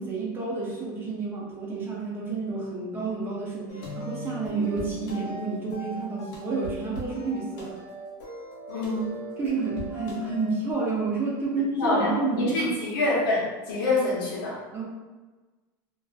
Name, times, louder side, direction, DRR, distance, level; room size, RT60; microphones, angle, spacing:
voice 1, 0.0-7.8 9.4-12.8 14.7-14.9, right 4 dB, 20° right, -4 dB, 0.5 m, -30 dB
sound 1, 3.7-10.7, equal, 65° left, 0.6 m, -38 dB
voice 2, 8.7-9.2 11.8-14.6, left 2 dB, 90° left, -5 dB, 0.9 m, -26 dB
2.4 x 2.3 x 2.3 m, 1.3 s
supercardioid pair, 160°, 11 cm